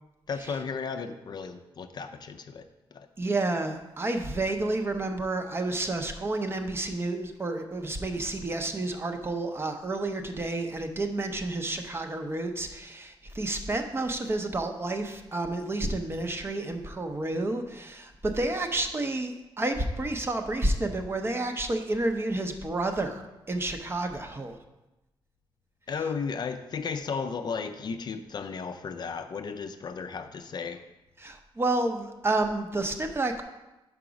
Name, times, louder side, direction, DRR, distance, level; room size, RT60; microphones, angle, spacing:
voice 1, 0.3-3.1 25.9-30.8, left 5 dB, 45° left, 8 dB, 0.4 m, -34 dB
voice 2, 3.2-24.6 31.2-33.4, right 2 dB, 25° right, 6 dB, 0.6 m, -30 dB
5.9 x 4.7 x 5.1 m, 0.99 s
wide cardioid pair, 130°, 10 cm